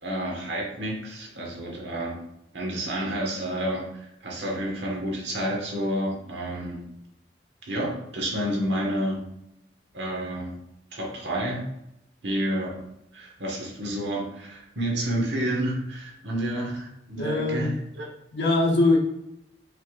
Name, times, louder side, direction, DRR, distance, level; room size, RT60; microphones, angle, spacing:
voice 1, 0.0-2.2 2.5-6.8 7.7-9.2 9.9-10.5 10.9-11.6 12.2-12.8 13.1-18.0, right 1 dB, 70° right, -2 dB, 1.3 m, -30 dB
voice 2, 17.2-17.8 18.3-19.0, left 2 dB, 65° left, 0 dB, 0.9 m, -22 dB
5.6 x 3.4 x 2.5 m, 0.83 s
head